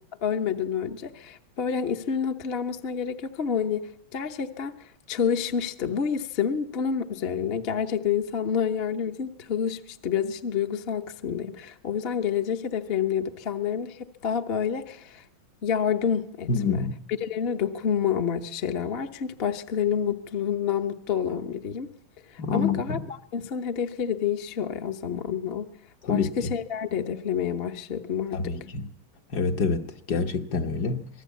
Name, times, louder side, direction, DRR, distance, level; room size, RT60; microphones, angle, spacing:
voice 1, 0.2-15.2 15.6-16.8 17.2-21.9 22.3-23.0 23.3-25.7 26.1-28.5, left 7 dB, 40° left, 1.0 m, -28 dB
voice 2, 16.5-16.9 22.4-23.0 26.0-26.5 28.3-28.9 29.3-31.1, left 4 dB, 55° left, 1.6 m, -27 dB
26.5 x 19.0 x 8.3 m
omnidirectional pair, 2.2 m